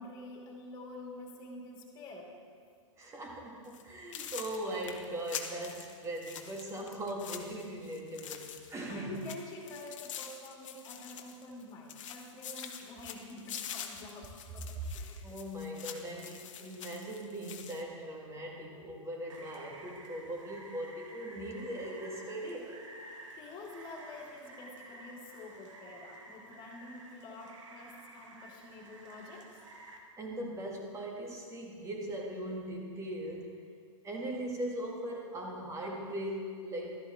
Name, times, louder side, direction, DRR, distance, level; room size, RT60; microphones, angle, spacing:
voice 1, 0.0-2.3 4.0-4.2 8.9-15.2 23.3-29.6, left 2 dB, 25° left, -2 dB, 2.6 m, -48 dB
voice 2, 3.0-9.2 15.2-22.8 30.2-33.6 34.0-37.0, right 1 dB, 15° right, 0 dB, 1.8 m, -40 dB
sound 1, 3.6-3.8 4.1-8.9 9.1-11.6 11.9-17.8, left 8 dB, 70° left, 1.1 m, -45 dB
Rain, 19.3-30.0, right 2 dB, 70° right, 1.7 m, -52 dB
12.5 x 12.0 x 3.7 m, 2.3 s
hypercardioid pair, 130°, 17 cm